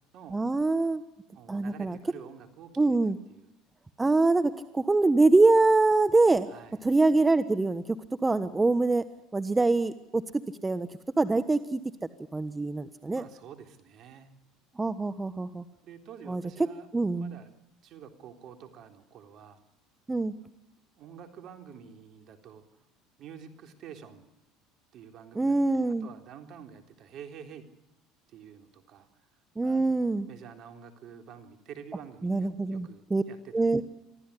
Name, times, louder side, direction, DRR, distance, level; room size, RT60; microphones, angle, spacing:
voice 1, 0.3-1.0 1.5-2.0 2.8-3.2 4.0-6.5 6.8-9.0 9.3-10.2 10.6-10.9 11.2-11.8 12.3-13.2 14.8-15.6 16.3-16.4 16.9-17.4 20.1-20.3 25.3-26.1 29.6-30.3 32.2-33.2 33.5-33.8, right 3 dB, 15° right, 12 dB, 1.2 m, -24 dB
voice 2, 1.3-3.5 6.5-6.8 12.9-14.3 15.8-16.9 17.2-17.5 17.8-19.6 21.0-22.6 23.2-24.3 24.9-27.6 28.3-29.1 29.6-29.8 30.3-33.8, right 8 dB, 55° right, 6 dB, 3.7 m, -48 dB
25.0 x 15.0 x 9.9 m, 0.93 s
supercardioid pair, 85°, 0 cm